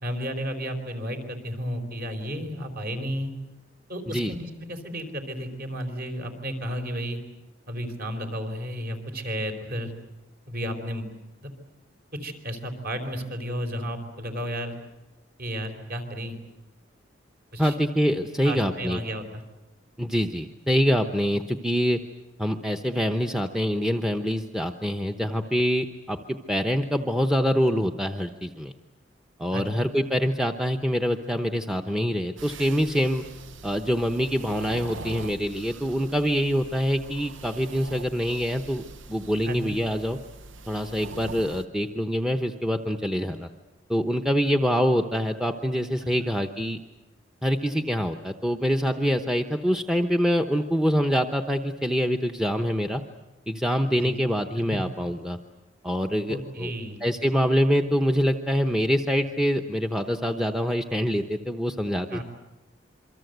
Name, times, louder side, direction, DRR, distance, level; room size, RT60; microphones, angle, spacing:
voice 1, 0.0-3.3 3.9-7.2 7.7-9.9 10.5-11.1 11.4-11.5 12.2-14.7 15.4-16.4 17.5-17.8 18.4-19.4 29.5-29.8 39.4-39.8 46.0-46.1 53.9-54.2 54.7-54.8 56.3-57.0 62.1-62.2, equal, 55° right, 6 dB, 4.3 m, -33 dB
voice 2, 17.6-19.0 20.0-22.0 22.4-28.7 29.4-33.2 33.6-38.8 39.1-40.2 40.7-43.5 43.9-46.8 47.4-53.0 53.5-55.4 55.8-56.7 57.0-62.2, equal, 5° right, 6 dB, 0.9 m, -25 dB
sound 1, 32.4-41.7, right 3 dB, 85° right, 1.0 m, -43 dB
27.0 x 24.0 x 8.0 m, 1.0 s
head